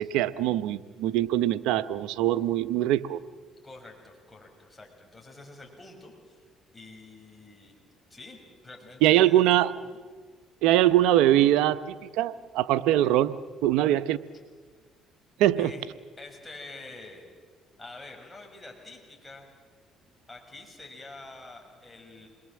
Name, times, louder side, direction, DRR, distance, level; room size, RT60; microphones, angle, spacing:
voice 1, 0.0-3.2 9.0-9.7 10.6-13.3 13.6-14.2 15.4-15.7, right 13 dB, 85° right, 15 dB, 0.8 m, -22 dB
voice 2, 3.6-6.5 6.7-7.8 8.1-9.5 9.9-10.0 15.6-15.8 16.2-17.3 17.8-19.5 20.3-22.3, left 2 dB, 15° left, 0 dB, 6.4 m, -47 dB
28.0 x 21.0 x 7.6 m, 1.5 s
supercardioid pair, 75°, 0 cm